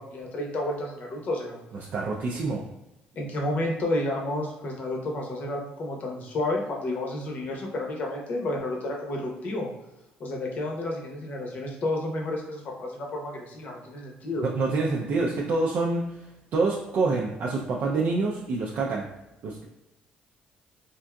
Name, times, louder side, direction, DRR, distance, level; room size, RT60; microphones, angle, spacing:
voice 1, 0.1-1.6 3.2-9.7 10.2-14.4, left 1 dB, 50° left, 0 dB, 0.8 m, -31 dB
voice 2, 1.9-2.6 14.4-16.0 16.5-19.1 19.4-19.7, right 3 dB, 55° right, -2 dB, 0.4 m, -26 dB
3.6 x 2.6 x 2.2 m, 0.95 s
cardioid pair, 125°, 3 cm